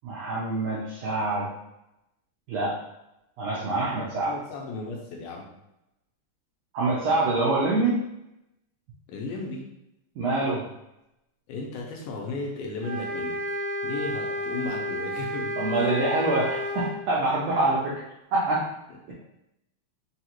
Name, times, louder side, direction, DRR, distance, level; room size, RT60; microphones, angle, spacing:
voice 1, 0.0-1.5 2.5-2.8 3.4-4.3 6.7-8.0 10.2-10.7 15.6-18.0 18.3-18.6 19.1-19.2, right 2 dB, 80° right, -6 dB, 1.5 m, -25 dB
voice 2, 4.3-5.5 9.1-9.7 11.5-15.9, left 3 dB, 80° left, 0 dB, 2.2 m, -35 dB
sound 1, 12.8-17.0, equal, 60° right, 1.8 m, -31 dB
5.5 x 2.4 x 2.9 m, 0.87 s
omnidirectional pair, 3.9 m